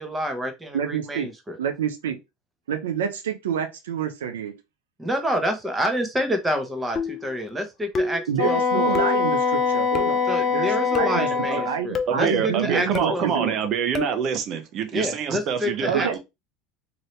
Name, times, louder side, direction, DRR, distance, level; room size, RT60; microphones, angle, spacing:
voice 1, 0.0-1.6 5.0-9.0 10.3-13.5 14.9-16.2, equal, 15° right, 1.0 m, -28 dB
voice 2, 0.7-1.3 1.6-2.2 2.7-4.5 8.3-11.3 11.6-13.6 15.9-16.2, right 8 dB, 85° right, 0.6 m, -28 dB
sound 1, 7.0-7.4 7.9-8.3 8.9-9.3 9.9-10.3 11.0-11.3 11.9-12.2 12.9-13.2 13.9-14.2, left 5 dB, 35° left, 0.6 m, -29 dB
Wind instrument woodwind instrument, 8.4-11.8, left 5 dB, 50° left, 1.2 m, -23 dB
voice 3, 12.1-16.2, right 7 dB, 50° right, 0.7 m, -26 dB
2.8 x 2.6 x 3.2 m
hypercardioid pair, 95°, 0 cm